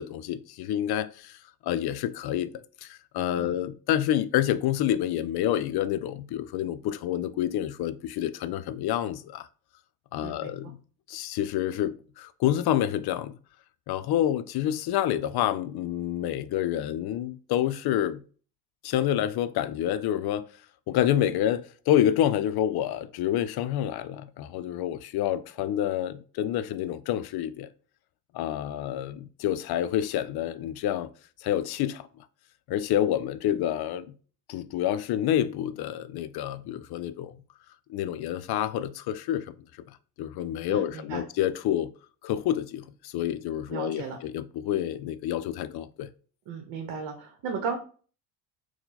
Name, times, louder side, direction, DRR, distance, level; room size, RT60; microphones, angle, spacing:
voice 1, 0.0-2.5 2.8-9.5 10.1-10.8 11.1-13.4 13.9-18.2 18.8-20.5 20.9-27.7 28.3-31.1 31.4-32.1 32.7-34.1 34.5-37.3 37.9-39.5 39.9-41.9 42.2-46.1, left 11 dB, 55° left, 0.5 m, -28 dB
voice 2, 10.2-10.7 40.7-41.2 43.7-44.2 46.5-47.8, right 5 dB, 65° right, 0.9 m, -35 dB
4.4 x 2.2 x 3.9 m
supercardioid pair, 65°, 48 cm